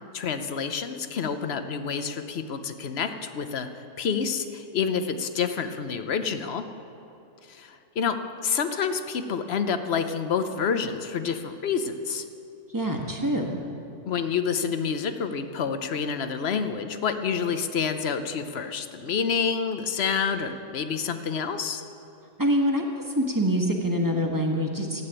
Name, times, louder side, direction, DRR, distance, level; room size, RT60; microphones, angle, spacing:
voice 1, 0.1-3.7 4.0-6.6 7.5-8.2 8.4-12.2 14.1-21.8, left 6 dB, 55° left, 9 dB, 1.0 m, -28 dB
voice 2, 12.7-13.5 22.4-22.8 23.1-25.0, equal, 15° right, 1 dB, 1.4 m, -25 dB
13.5 x 8.6 x 8.9 m, 2.8 s
omnidirectional pair, 1.4 m